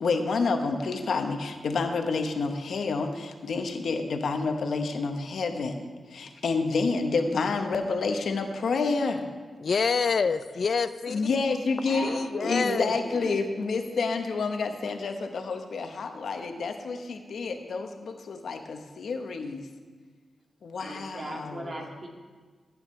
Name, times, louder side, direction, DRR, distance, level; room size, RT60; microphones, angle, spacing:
voice 1, 0.0-9.2 11.1-12.1 12.4-19.7 20.6-21.9, left 4 dB, 80° left, 5 dB, 0.9 m, -29 dB
voice 2, 9.6-11.2 12.0-13.0, left 5 dB, 60° left, 12 dB, 0.3 m, -27 dB
voice 3, 11.9-13.4 20.8-22.1, right 1 dB, 45° right, 0 dB, 2.0 m, -37 dB
15.0 x 8.8 x 3.2 m, 1.5 s
wide cardioid pair, 90°, 0 cm